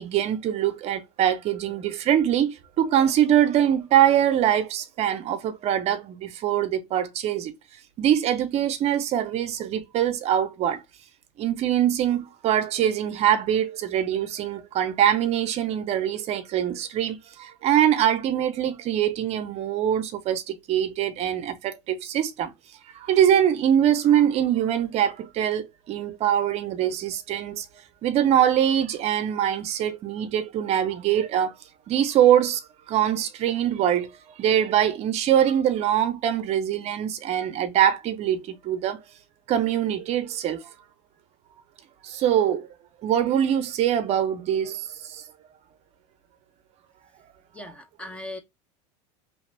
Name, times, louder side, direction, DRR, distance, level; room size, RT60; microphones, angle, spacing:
voice 1, 0.0-7.5 8.0-10.8 11.4-22.5 22.9-27.7 28.0-31.6 31.9-32.6 32.9-34.1 34.4-39.0 39.5-40.6 42.0-42.7 43.0-45.2, right 10 dB, 40° right, 0.6 m, -23 dB
voice 2, 47.5-48.4, left 1 dB, 5° left, 0.5 m, -38 dB
3.0 x 2.2 x 3.2 m
supercardioid pair, 125°, 16 cm